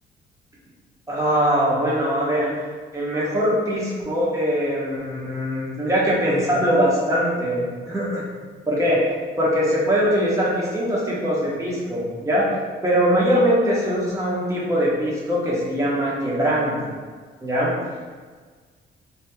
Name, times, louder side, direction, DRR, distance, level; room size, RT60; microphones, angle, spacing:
voice 1, 1.1-2.5 2.9-8.2 8.7-9.0 9.4-12.5 12.8-16.9 17.4-17.7, equal, 15° right, -7 dB, 1.1 m, -22 dB
3.1 x 2.8 x 2.2 m, 1.5 s
cardioid pair, 90°, 20 cm